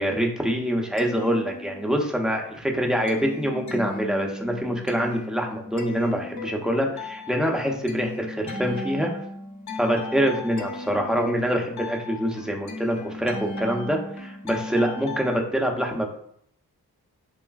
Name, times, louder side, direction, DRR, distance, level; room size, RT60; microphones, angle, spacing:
voice 1, 0.0-9.1 9.8-16.2, equal, ahead, 1 dB, 0.5 m, -25 dB
sound 1, 1.0-2.2 2.5-15.4, left 2 dB, 45° left, 0.6 m, -36 dB
3.0 x 2.4 x 2.3 m, 0.66 s
cardioid pair, 50°, 39 cm